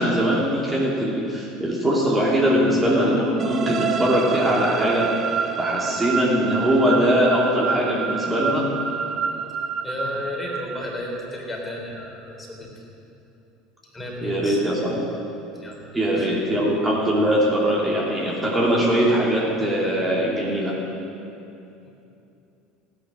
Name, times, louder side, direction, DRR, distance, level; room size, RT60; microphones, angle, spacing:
voice 1, 0.0-5.1 5.6-8.7 14.2-15.1 15.9-20.8, equal, 15° right, -5 dB, 2.8 m, -21 dB
sound 1, 3.4-11.2, right 6 dB, 35° right, 0.7 m, -28 dB
voice 2, 9.8-12.7 13.9-14.6 15.6-15.8 16.2-16.3, left 1 dB, 15° left, -1 dB, 3.5 m, -33 dB
16.5 x 10.0 x 6.4 m, 2.8 s
figure-of-eight pair, 70°, 0 cm